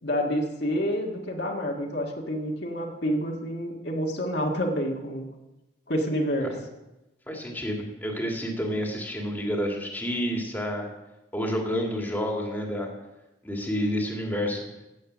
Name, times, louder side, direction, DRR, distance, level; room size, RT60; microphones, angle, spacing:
voice 1, 0.0-5.3 5.9-6.5, equal, 60° left, 0 dB, 1.8 m, -28 dB
voice 2, 7.3-10.9 11.3-12.9 13.4-14.6, equal, 10° left, 0 dB, 2.1 m, -29 dB
14.5 x 8.5 x 6.2 m, 0.99 s
head